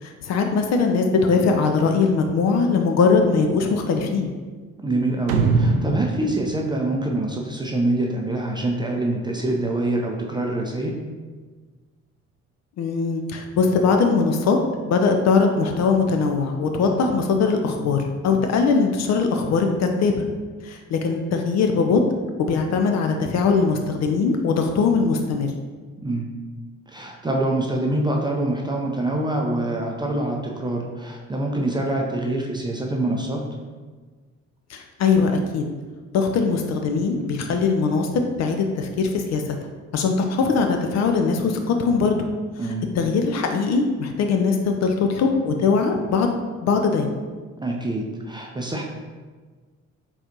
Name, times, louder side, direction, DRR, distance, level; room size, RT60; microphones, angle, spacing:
voice 1, 0.0-4.3 12.8-14.6 14.9-20.2 20.6-22.0 22.4-25.5 34.7-35.7 36.1-39.6 39.9-42.3 43.0-46.4 46.6-47.2, left 4 dB, 40° left, 4 dB, 0.5 m, -21 dB
voice 2, 4.8-10.9 26.0-26.3 26.9-33.4 42.6-42.9 47.6-48.8, right 1 dB, 10° right, 0 dB, 0.5 m, -25 dB
sound 1, 5.3-7.8, right 4 dB, 80° right, 0.5 m, -23 dB
4.2 x 3.8 x 2.8 m, 1.4 s
figure-of-eight pair, 45°, 40 cm